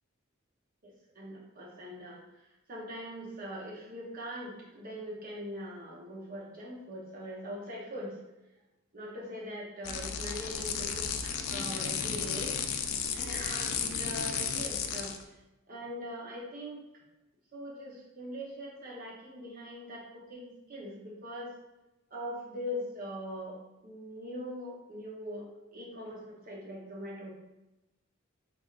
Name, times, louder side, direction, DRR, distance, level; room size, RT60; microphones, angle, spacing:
voice 1, 0.8-2.2 2.7-8.2 8.9-12.5 13.1-15.1 15.7-16.8 17.5-21.5 22.1-23.6 23.8-25.5 25.7-27.3, equal, 45° right, -3 dB, 0.8 m, -41 dB
sound 1, 9.8-15.2, left 7 dB, 80° left, 0.3 m, -34 dB
3.4 x 3.3 x 2.4 m, 0.99 s
head